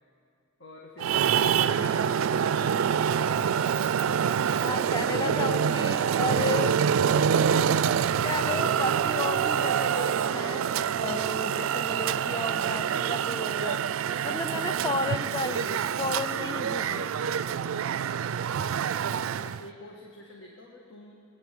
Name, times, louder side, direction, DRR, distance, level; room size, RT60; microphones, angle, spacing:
voice 1, 0.6-2.8 18.2-21.2, left 1 dB, 75° left, -1 dB, 1.5 m, -48 dB
Traffic noise roadway noise, 1.0-19.7, right 8 dB, 90° right, 0.4 m, -26 dB
voice 2, 4.6-6.8 8.2-13.8 14.2-17.1, left 3 dB, 20° left, 10 dB, 0.5 m, -33 dB
21.0 x 9.1 x 7.5 m, 2.4 s
head